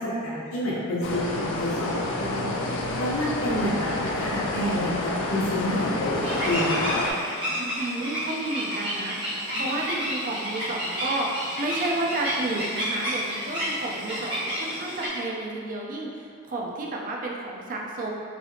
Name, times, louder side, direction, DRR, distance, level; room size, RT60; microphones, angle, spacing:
voice 1, 0.0-2.4 3.0-7.0 9.5-9.8, equal, 80° left, -7 dB, 0.9 m, -29 dB
sound 1, 1.0-7.1, left 2 dB, 60° left, 0.3 m, -29 dB
sound 2, 6.2-15.1, equal, 25° right, 1.0 m, -30 dB
voice 2, 7.6-9.1 9.6-18.1, right 2 dB, 40° right, -1 dB, 0.4 m, -31 dB
3.3 x 2.8 x 2.7 m, 2.2 s
head